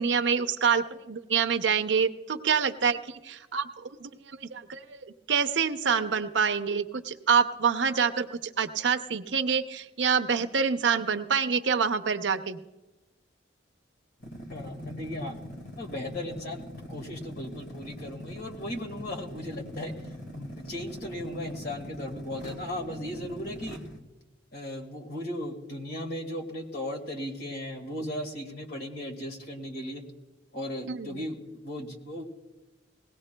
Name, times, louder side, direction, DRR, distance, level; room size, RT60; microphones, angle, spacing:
voice 1, 0.0-5.0 5.3-12.6 30.9-31.2, right 6 dB, 70° right, 9 dB, 0.6 m, -26 dB
sound 1, 14.2-24.0, equal, 75° left, 1.5 m, -42 dB
voice 2, 14.5-15.3 15.8-19.9 20.3-23.8 24.5-30.0 30.5-32.2, left 1 dB, 55° left, 2 dB, 1.9 m, -36 dB
20.5 x 17.0 x 2.2 m, 1.1 s
head